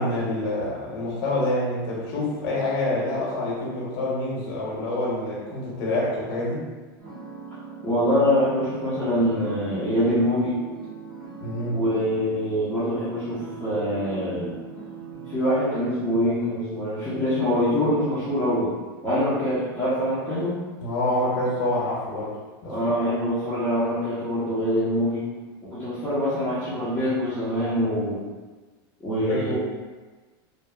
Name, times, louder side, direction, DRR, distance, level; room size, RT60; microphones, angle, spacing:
voice 1, 0.0-6.6 11.4-11.8 20.8-22.3 22.6-22.9 29.3-29.6, left 1 dB, 65° left, -5 dB, 1.0 m, -27 dB
sound 1, 7.0-15.4, right 6 dB, 70° right, 1.3 m, -40 dB
voice 2, 7.8-10.6 11.7-14.6 15.3-18.7 19.0-20.6 22.6-25.2 25.7-28.2 29.0-29.6, equal, 10° left, -14 dB, 0.8 m, -24 dB
3.0 x 2.3 x 2.3 m, 1.3 s
supercardioid pair, 145°, 12 cm